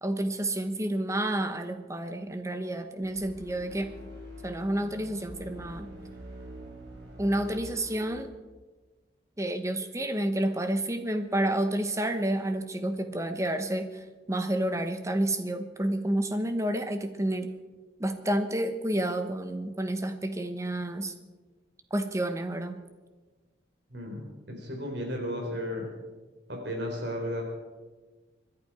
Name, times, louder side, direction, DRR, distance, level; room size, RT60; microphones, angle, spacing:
voice 1, 0.0-3.9 4.4-5.9 7.2-8.3 9.4-17.5 18.0-21.1 21.9-22.8, right 1 dB, 15° right, 8 dB, 1.0 m, -30 dB
sound 1, 3.0-8.2, equal, 85° right, 4.5 m, -45 dB
voice 2, 23.9-25.9 26.5-27.4, equal, 65° right, 1 dB, 4.1 m, -34 dB
25.5 x 11.0 x 4.9 m, 1.3 s
head